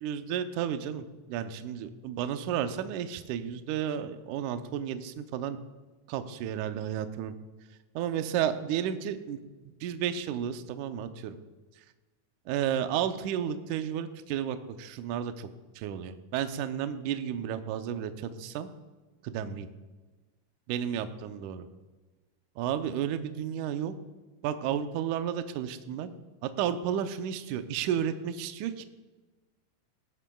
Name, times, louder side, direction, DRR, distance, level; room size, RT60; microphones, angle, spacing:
voice 1, 0.0-5.6 6.1-7.3 8.0-9.4 9.8-11.4 12.5-15.5 15.8-18.7 19.2-19.7 20.7-21.7 22.6-23.9 24.4-26.1 26.4-28.8, right 9 dB, 90° right, 9 dB, 1.7 m, -32 dB
18.0 x 11.0 x 2.3 m, 1.2 s
omnidirectional pair, 4.4 m